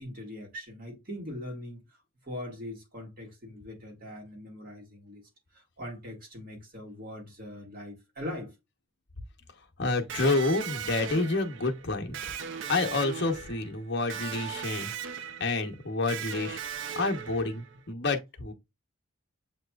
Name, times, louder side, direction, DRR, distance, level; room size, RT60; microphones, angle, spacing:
voice 1, 0.0-2.0 2.2-5.2 5.5-8.5, left 1 dB, 45° right, 1.7 m, -41 dB
voice 2, 9.8-12.2 12.7-14.9 15.4-16.6 16.9-18.5, left 3 dB, 55° left, 0.8 m, -29 dB
Electric guitar, 10.1-17.8, right 8 dB, 60° right, 0.4 m, -38 dB
7.4 x 2.9 x 2.3 m
head